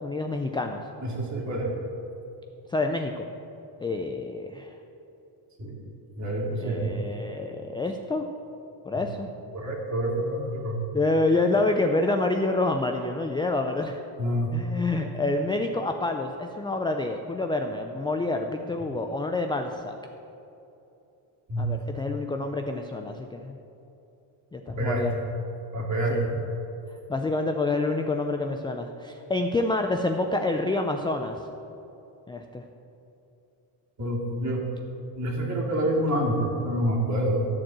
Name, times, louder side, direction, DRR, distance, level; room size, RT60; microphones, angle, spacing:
voice 1, 0.0-0.8 2.7-3.3 3.8-4.7 6.6-8.2 8.9-9.3 10.9-14.0 14.5-20.0 21.6-23.6 24.5-25.1 26.1-26.4 27.1-31.4 32.3-32.6, left 2 dB, 10° left, 4 dB, 0.3 m, -27 dB
voice 2, 1.0-1.7 5.6-5.8 6.1-6.9 9.5-10.8 14.2-14.5 21.5-22.0 24.7-25.0 25.7-26.3 34.0-34.6 35.2-37.5, right 1 dB, 35° right, -2 dB, 2.4 m, -27 dB
13.0 x 4.5 x 7.4 m, 2.8 s
cardioid pair, 115°, 48 cm